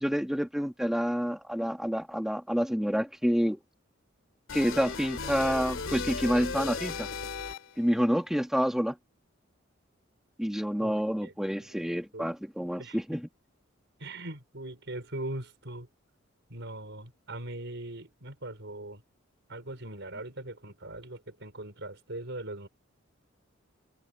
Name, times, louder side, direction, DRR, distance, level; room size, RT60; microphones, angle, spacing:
voice 1, 0.0-3.6 4.5-7.1 7.8-9.0 10.4-13.3, equal, ahead, 1.6 m, -28 dB
sound 1, 4.5-7.9, left 4 dB, 80° left, 2.4 m, -36 dB
voice 2, 10.8-11.8 12.1-12.3 12.8-13.0 14.0-15.9 16.5-19.0 19.5-22.7, right 1 dB, 65° right, 5.3 m, -41 dB
head